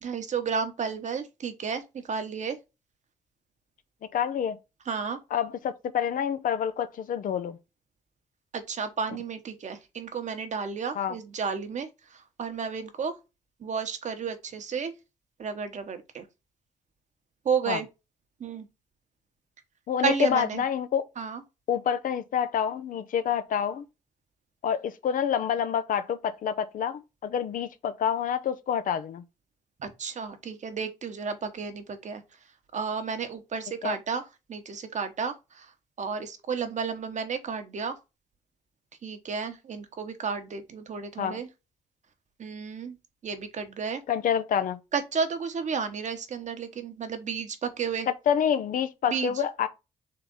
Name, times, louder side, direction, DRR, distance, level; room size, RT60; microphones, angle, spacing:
voice 1, 0.0-2.6 4.9-5.2 8.5-13.1 13.6-14.9 15.4-16.3 17.4-17.9 18.4-18.7 20.0-20.6 21.2-21.4 29.8-32.2 32.7-34.2 34.5-35.7 36.0-38.0 39.0-41.5 42.4-43.0 43.2-44.0 44.9-48.1 49.1-49.4, right 6 dB, 50° right, 1.0 m, -32 dB
voice 2, 4.1-4.6 5.3-7.6 11.0-11.1 17.7-17.8 19.9-21.0 21.7-23.8 24.6-29.2 33.8-34.0 41.2-41.4 44.1-44.8 48.1-49.7, left 8 dB, 60° left, 0.6 m, -27 dB
3.8 x 3.4 x 3.8 m
hypercardioid pair, 50°, 15 cm